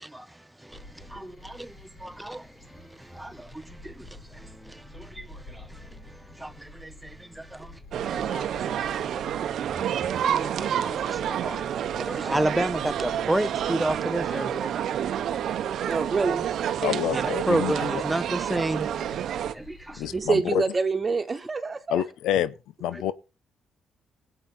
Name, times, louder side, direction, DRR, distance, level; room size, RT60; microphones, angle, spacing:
voice 1, 0.0-15.4 17.1-19.2 19.5-20.2 22.9-23.0, right 1 dB, 5° right, 0.9 m, -32 dB
sound 1, 0.7-20.3, left 2 dB, 45° left, 3.7 m, -49 dB
sound 2, 7.9-19.5, right 10 dB, 70° right, 0.8 m, -29 dB
voice 2, 15.9-16.5 20.1-22.0, right 4 dB, 30° right, 1.7 m, -26 dB
voice 3, 16.8-17.7 20.0-20.6 21.9-22.5 22.8-23.1, left 11 dB, 85° left, 0.7 m, -27 dB
20.5 x 8.2 x 4.2 m
cardioid pair, 90°, 0 cm